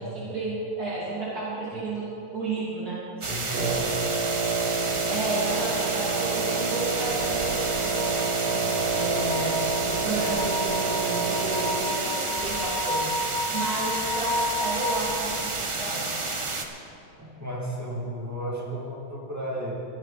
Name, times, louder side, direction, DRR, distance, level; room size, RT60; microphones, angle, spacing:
voice 1, 0.0-2.0 2.3-3.0 5.1-8.3 8.8-13.0 13.5-16.1, right 2 dB, 65° right, -8 dB, 3.0 m, -32 dB
sound 1, 3.2-16.7, right 3 dB, 40° right, 0.4 m, -31 dB
voice 2, 3.3-4.0 8.5-8.9 17.2-19.7, right 1 dB, 10° right, -5 dB, 2.3 m, -34 dB
Wind instrument woodwind instrument, 3.5-12.1, right 5 dB, 85° right, 1.5 m, -29 dB
sound 2, 5.5-15.0, left 2 dB, 60° left, 0.7 m, -33 dB
21.5 x 8.2 x 4.2 m, 2.8 s
omnidirectional pair, 1.8 m